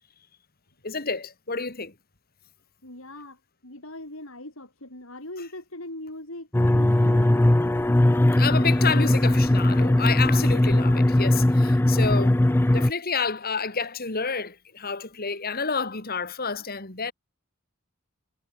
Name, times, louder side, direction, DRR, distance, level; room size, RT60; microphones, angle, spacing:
voice 1, 0.8-1.9 8.4-17.1, left 5 dB, 45° left, 3.2 m, -29 dB
voice 2, 2.8-7.3, left 1 dB, 75° left, 7.4 m, -40 dB
sound 1, 6.5-12.9, left 1 dB, 10° left, 0.4 m, -19 dB
head